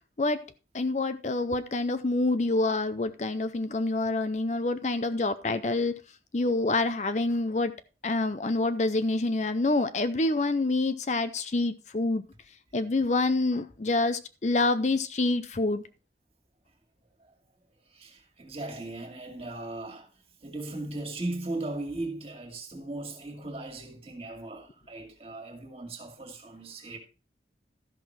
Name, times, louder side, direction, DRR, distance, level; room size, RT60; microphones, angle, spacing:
voice 1, 0.7-5.9 6.3-7.7 8.0-12.3 12.7-15.8, left 2 dB, 40° left, 0.5 m, -27 dB
voice 2, 17.9-20.1 20.4-27.0, right 2 dB, 35° right, 2.1 m, -38 dB
13.0 x 5.9 x 4.6 m
head